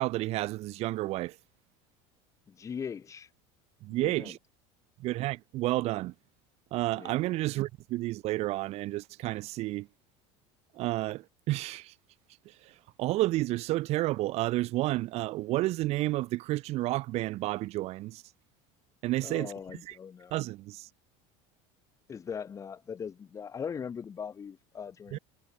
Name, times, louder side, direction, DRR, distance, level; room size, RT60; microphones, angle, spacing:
voice 1, 0.0-1.4 3.8-4.4 5.0-6.1 6.7-9.9 10.7-11.9 12.4-18.2 19.0-19.5 19.8-20.0 20.3-20.9 25.1-25.2, right 18 dB, 50° right, 4.9 m, -31 dB
voice 2, 2.5-3.3 4.0-4.3 7.0-7.2 19.2-20.3 22.1-25.2, left 7 dB, 20° left, 6.2 m, -40 dB
cardioid pair, 155°, 14 cm